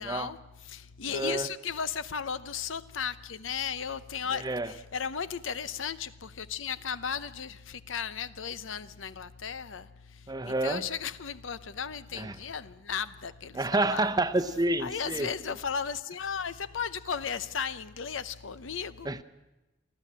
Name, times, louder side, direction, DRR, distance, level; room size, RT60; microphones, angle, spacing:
voice 1, 0.0-14.2 14.8-19.2, left 7 dB, 80° left, 0.8 m, -35 dB
voice 2, 1.1-1.5 4.4-4.7 10.3-10.8 12.2-12.4 13.5-15.3 19.0-19.2, right 2 dB, 20° right, 0.8 m, -28 dB
29.5 x 12.0 x 7.5 m
head